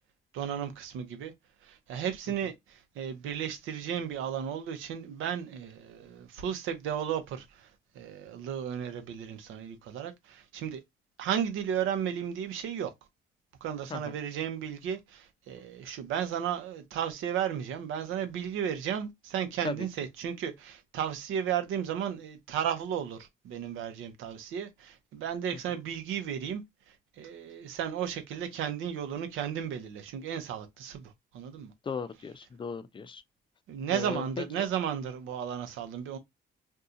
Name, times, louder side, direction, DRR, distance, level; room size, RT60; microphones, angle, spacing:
voice 1, 0.3-1.3 1.9-2.5 3.0-7.4 8.0-10.8 11.2-12.9 13.6-23.2 23.4-26.6 27.2-31.1 31.3-31.7 33.7-36.2, right 9 dB, 90° right, 0.7 m, -34 dB
voice 2, 31.8-33.2 33.9-34.7, left 5 dB, 25° left, 0.4 m, -37 dB
2.7 x 2.3 x 3.6 m
cardioid pair, 90°, 20 cm